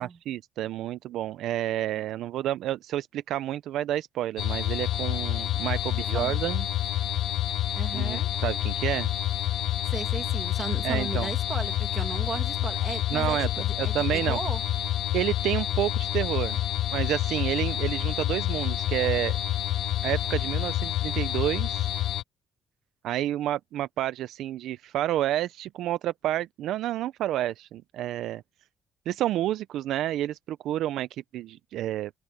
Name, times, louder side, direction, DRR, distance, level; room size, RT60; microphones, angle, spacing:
voice 1, 0.0-6.7 7.9-9.1 10.8-11.3 13.1-14.4 15.1-16.6 16.9-19.4 20.0-21.9 23.0-28.4 29.1-32.1, right 13 dB, 85° right, 0.5 m, -30 dB
sound 1, 4.4-22.2, left 13 dB, 75° left, 0.8 m, -28 dB
voice 2, 6.0-6.3 7.8-8.3 9.9-14.6, right 5 dB, 40° right, 2.2 m, -36 dB
open air
cardioid pair, 90°, 0 cm